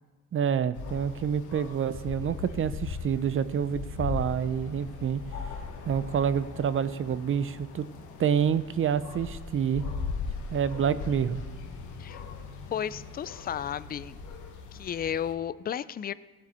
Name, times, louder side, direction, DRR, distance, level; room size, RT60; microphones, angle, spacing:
voice 1, 0.3-5.2 5.8-7.9 8.2-9.8 10.5-11.4, right 8 dB, 45° right, 14 dB, 0.6 m, -27 dB
sound 1, 0.7-15.3, left 5 dB, 80° left, 1.4 m, -39 dB
voice 2, 12.7-14.2 14.7-16.1, left 9 dB, 30° left, 16 dB, 0.4 m, -33 dB
15.5 x 7.7 x 4.3 m, 1.4 s
cardioid pair, 90°, 30 cm